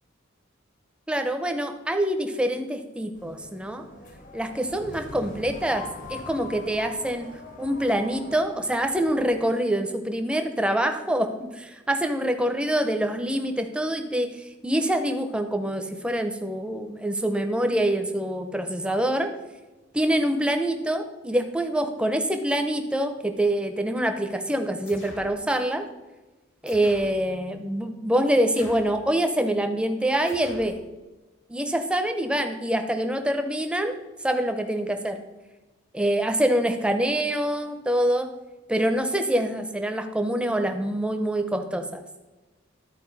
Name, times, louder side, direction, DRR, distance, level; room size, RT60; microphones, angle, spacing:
voice 1, 1.1-3.8 4.3-5.8 6.1-7.3 7.6-19.3 19.9-25.9 26.6-30.7 31.5-34.0 34.2-35.2 35.9-38.3 38.7-42.0, right 1 dB, 5° right, 6 dB, 0.6 m, -25 dB
sound 1, 3.1-9.4, left 3 dB, 40° left, 0.8 m, -43 dB
sound 2, 24.9-25.4 26.7-27.2 28.5-29.1 30.3-30.8, left 1 dB, 75° left, 1.8 m, -45 dB
12.5 x 4.5 x 4.0 m, 1.1 s
head